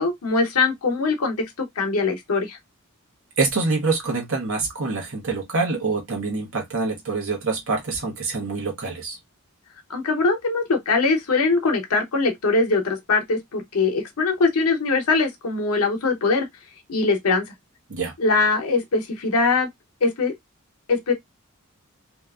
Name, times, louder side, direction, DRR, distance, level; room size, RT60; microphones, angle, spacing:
voice 1, 0.0-2.6 9.9-16.5 16.9-17.4 18.2-19.7 20.0-20.3 20.9-21.1, left 3 dB, 85° left, 0.8 m, -22 dB
voice 2, 3.4-9.2 17.9-18.1, right 3 dB, 65° right, 1.0 m, -25 dB
2.8 x 2.4 x 2.3 m
head